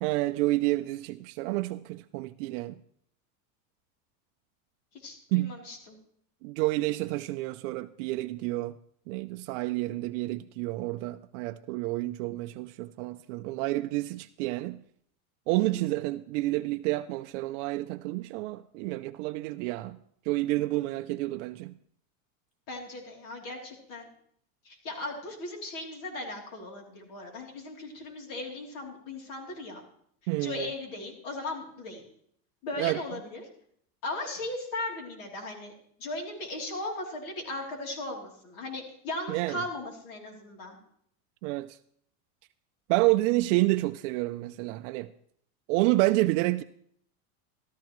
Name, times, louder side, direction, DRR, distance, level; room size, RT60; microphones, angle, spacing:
voice 1, 0.0-2.8 5.3-5.6 6.4-8.8 9.1-14.8 15.5-20.0 20.3-21.7 30.3-30.7 32.8-33.0 39.3-39.6 41.4-41.8 42.9-45.1 45.7-46.6, right 19 dB, 65° right, 0.5 m, -29 dB
voice 2, 5.0-6.0 15.6-15.7 22.7-24.1 24.6-29.8 30.4-32.0 32.6-33.5 34.0-35.7 36.0-40.8, left 2 dB, 50° left, 3.2 m, -37 dB
13.5 x 13.0 x 3.1 m
supercardioid pair, 140°, 42 cm